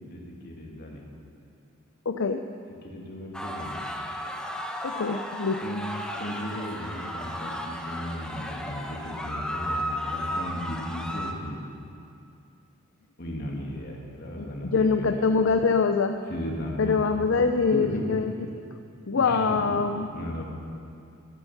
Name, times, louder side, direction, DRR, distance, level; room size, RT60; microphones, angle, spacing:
voice 1, 0.1-1.0 2.8-3.9 5.6-5.8 6.2-11.6 13.2-15.3 16.3-17.2 17.7-18.0 19.1-20.4, left 1 dB, 50° left, -2 dB, 2.5 m, -35 dB
voice 2, 2.1-2.4 4.8-5.6 14.4-16.2 16.8-18.3 19.1-20.1, left 4 dB, 65° left, 7 dB, 0.5 m, -24 dB
sound 1, 3.3-11.3, equal, 5° left, 1.0 m, -34 dB
13.5 x 13.0 x 5.9 m, 2.5 s
head